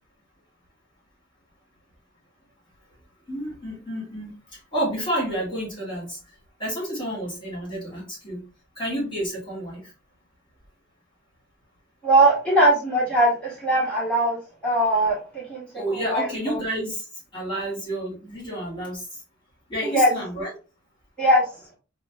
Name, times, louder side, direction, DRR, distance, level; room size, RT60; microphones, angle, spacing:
voice 1, 3.3-4.3 4.7-6.2 6.6-8.4 8.8-9.8 15.7-17.0 17.3-19.0 19.7-20.5, right 1 dB, 25° left, -5 dB, 1.8 m, -29 dB
voice 2, 12.0-16.6 19.8-20.1 21.2-21.4, right 1 dB, 5° left, -6 dB, 1.2 m, -21 dB
4.9 x 2.1 x 2.3 m, 0.33 s
head